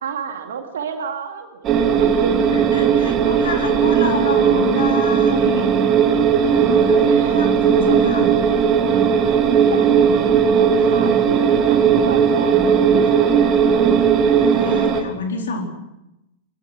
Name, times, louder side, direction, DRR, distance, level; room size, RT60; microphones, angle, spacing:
voice 1, 0.0-2.3 7.0-7.3 7.9-8.1 9.6-13.8, right 6 dB, 65° right, 5 dB, 2.5 m, -30 dB
sound 1, 1.6-15.0, right 7 dB, 30° right, 3.1 m, -16 dB
voice 2, 2.5-5.7 6.4-8.3 14.3-15.6, left 4 dB, 65° left, 2 dB, 4.2 m, -28 dB
23.0 x 22.0 x 6.1 m, 0.89 s
figure-of-eight pair, 95°, 0 cm